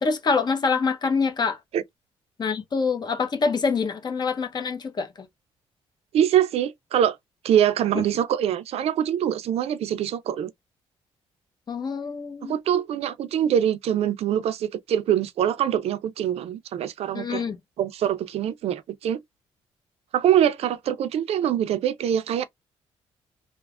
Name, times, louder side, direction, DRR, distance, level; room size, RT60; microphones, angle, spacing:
voice 1, 0.0-1.6 2.4-5.3 11.7-12.6 17.1-17.6, left 5 dB, 40° left, 0.8 m, -25 dB
voice 2, 6.1-7.2 7.4-10.5 12.5-17.4 17.8-19.2 20.1-22.4, right 10 dB, 70° right, 0.4 m, -24 dB
3.2 x 2.1 x 2.4 m
cardioid pair, 100°, 11 cm